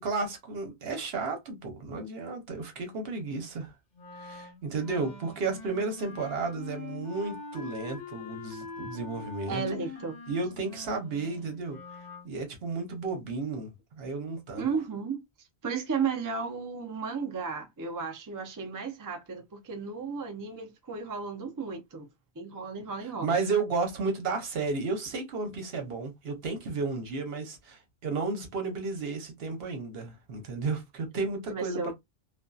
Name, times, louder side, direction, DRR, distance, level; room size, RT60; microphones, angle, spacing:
voice 1, 0.0-3.7 4.2-9.6 10.3-11.8 12.2-14.7 23.2-31.9, right 4 dB, 70° right, 1.0 m, -33 dB
Wind instrument woodwind instrument, 3.9-12.3, left 3 dB, 50° left, 0.7 m, -44 dB
voice 2, 9.5-10.2 14.5-15.2 15.6-22.1 22.4-23.4 31.5-31.9, right 5 dB, 30° right, 0.3 m, -34 dB
2.6 x 2.2 x 2.2 m
omnidirectional pair, 1.1 m